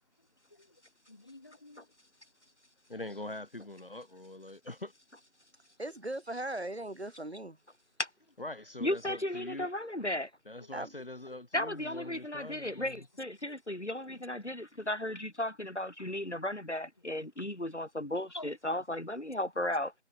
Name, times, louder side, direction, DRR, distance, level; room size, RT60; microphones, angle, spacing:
voice 1, 0.2-1.9 3.1-3.2 10.6-10.8 11.3-11.4 13.4-13.5 14.1-14.3 15.0-15.1 18.3-18.6 19.6-19.8, left 2 dB, 20° left, 3.1 m, -52 dB
voice 2, 2.9-4.9 8.4-9.7 10.5-13.0, left 2 dB, 55° left, 1.4 m, -43 dB
voice 3, 5.8-7.6 10.7-10.9, right 1 dB, 65° right, 3.3 m, -38 dB
voice 4, 8.8-10.3 11.5-19.9, left 1 dB, 85° left, 4.2 m, -35 dB
figure-of-eight pair, 170°, 34 cm